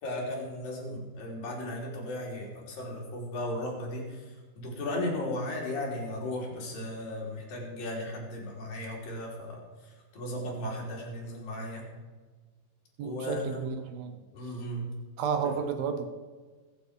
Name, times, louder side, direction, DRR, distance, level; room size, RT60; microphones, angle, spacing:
voice 1, 0.0-4.2 4.6-11.9 13.0-13.6 14.3-14.9 15.4-15.5, left 1 dB, 55° left, -2 dB, 5.0 m, -36 dB
voice 2, 13.0-14.2 15.2-16.1, right 7 dB, 70° right, 7 dB, 2.5 m, -32 dB
21.0 x 9.5 x 5.2 m, 1.4 s
omnidirectional pair, 5.0 m